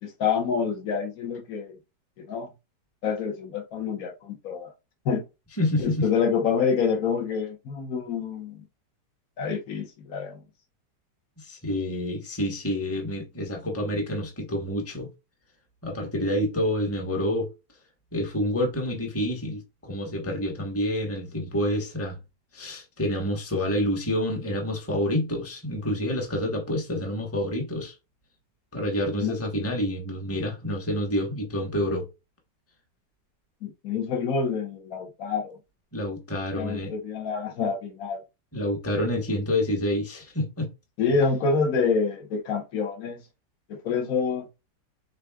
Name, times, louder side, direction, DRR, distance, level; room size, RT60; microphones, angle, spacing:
voice 1, 0.0-1.8 2.2-2.5 3.0-4.7 5.0-5.2 5.8-8.6 9.4-10.4 29.2-29.4 33.6-35.6 36.5-38.2 41.0-43.2 43.7-44.5, left 5 dB, 55° left, 1.5 m, -27 dB
voice 2, 5.6-6.0 11.4-15.1 15.8-17.5 18.1-22.2 22.5-27.9 28.7-32.1 35.9-36.9 38.5-40.7, left 1 dB, 10° left, 0.9 m, -28 dB
5.6 x 3.9 x 2.3 m
omnidirectional pair, 1.8 m